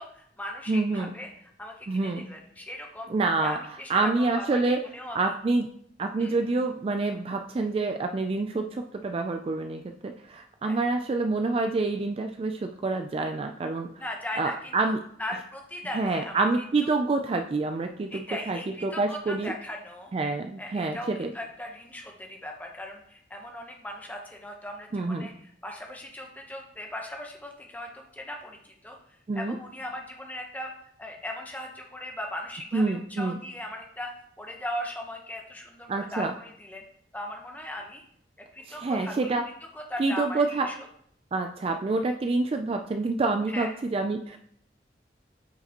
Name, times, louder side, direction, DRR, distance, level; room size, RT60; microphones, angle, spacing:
voice 1, 0.0-3.1 3.4-5.3 6.2-6.3 10.6-10.8 14.0-16.4 16.8-17.0 18.1-20.1 20.6-30.7 31.0-34.1 34.4-36.8 37.1-38.0 38.5-39.3 39.6-40.9 43.5-43.7, left 1 dB, 10° left, 1 dB, 0.9 m, -39 dB
voice 2, 0.7-1.1 1.9-2.3 3.1-3.6 3.9-4.8 5.1-5.7 6.0-13.9 14.4-15.0 15.9-19.5 20.1-21.3 24.9-25.3 29.3-29.6 32.7-33.4 35.9-36.3 38.7-39.4 40.0-40.7 41.3-44.4, right 3 dB, 30° right, 5 dB, 0.3 m, -27 dB
8.3 x 4.8 x 2.9 m, 0.67 s
head